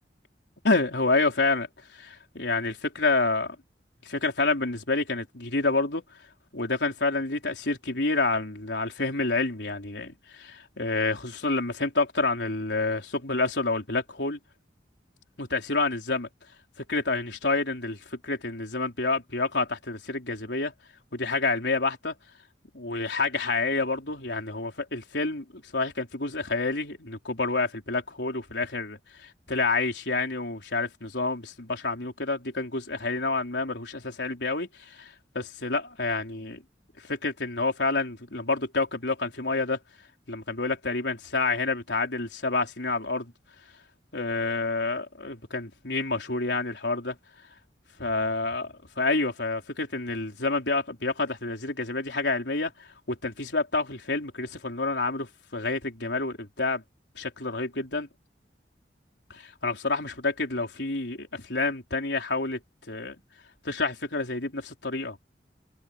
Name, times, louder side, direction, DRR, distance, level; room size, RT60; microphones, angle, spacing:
voice 1, 0.6-1.7 1.9-3.6 4.0-6.0 6.5-14.4 15.4-16.3 16.9-20.7 21.1-22.2 22.7-36.6 37.0-39.8 40.3-43.3 44.1-47.2 48.0-56.8 57.2-58.1 59.3-62.6 62.9-63.2 63.6-65.2, left 3 dB, 80° left, 4.1 m, -28 dB
head